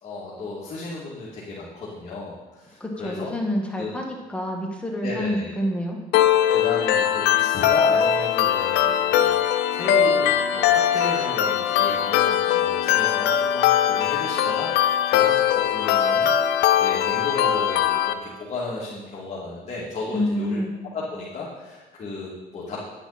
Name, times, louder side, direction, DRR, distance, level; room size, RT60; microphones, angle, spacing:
voice 1, 0.0-3.3 3.8-3.9 5.0-5.5 6.5-9.4 9.7-20.6 20.9-22.8, left 3 dB, 40° left, -8 dB, 2.8 m, -34 dB
voice 2, 2.8-6.0 20.1-20.7, left 1 dB, 5° left, -1 dB, 1.9 m, -27 dB
sound 1, 6.1-18.1, left 10 dB, 85° left, 0.7 m, -21 dB
10.5 x 10.0 x 4.4 m, 1.2 s
cardioid pair, 110°, 17 cm